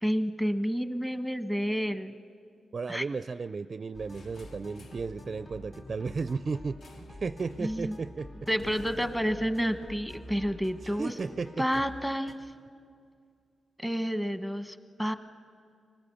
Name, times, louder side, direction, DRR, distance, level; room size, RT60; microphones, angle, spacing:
voice 1, 0.0-2.1 2.9-3.0 7.6-8.0 8.5-11.1 11.6-12.4 13.8-15.1, equal, 5° left, 9 dB, 1.2 m, -30 dB
voice 2, 2.7-8.3 10.8-11.7, right 4 dB, 45° right, 13 dB, 0.4 m, -34 dB
sound 1, 3.9-12.3, left 1 dB, 55° left, 4.8 m, -48 dB
sound 2, 4.1-5.1 6.8-7.2 7.5-7.8 8.6-10.9, left 2 dB, 75° left, 1.3 m, -52 dB
24.0 x 20.0 x 7.1 m, 2.2 s
cardioid pair, 80°, 0 cm